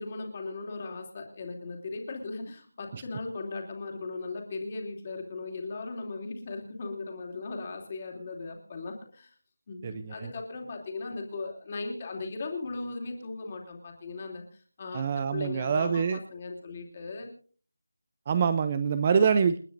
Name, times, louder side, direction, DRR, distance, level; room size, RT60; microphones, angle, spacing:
voice 1, 0.0-9.3 9.7-17.3, left 3 dB, 20° left, 2 dB, 2.9 m, -38 dB
voice 2, 9.8-10.3 14.9-16.2 18.3-19.6, right 6 dB, 15° right, 12 dB, 0.5 m, -25 dB
29.0 x 9.8 x 2.6 m, 0.41 s
figure-of-eight pair, 180°, 0 cm